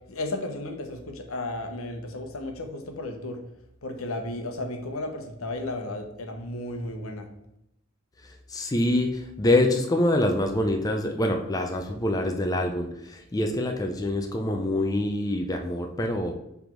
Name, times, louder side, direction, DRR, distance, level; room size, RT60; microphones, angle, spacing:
voice 1, 0.1-3.4 3.8-7.3, left 2 dB, 75° left, 4 dB, 1.0 m, -34 dB
voice 2, 8.2-16.3, left 1 dB, 15° left, 3 dB, 0.5 m, -25 dB
6.1 x 3.4 x 4.5 m, 0.82 s
head